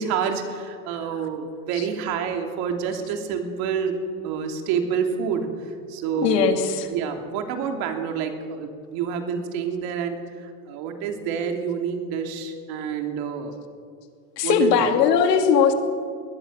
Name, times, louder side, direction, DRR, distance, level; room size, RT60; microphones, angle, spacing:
voice 1, 0.0-5.5 5.9-6.6 6.9-13.6 14.4-14.8, right 7 dB, 50° right, 4 dB, 3.0 m, -28 dB
voice 2, 6.2-6.9 14.4-15.7, left 6 dB, 80° left, 6 dB, 2.7 m, -19 dB
22.0 x 19.0 x 6.6 m, 2.2 s
supercardioid pair, 140°, 48 cm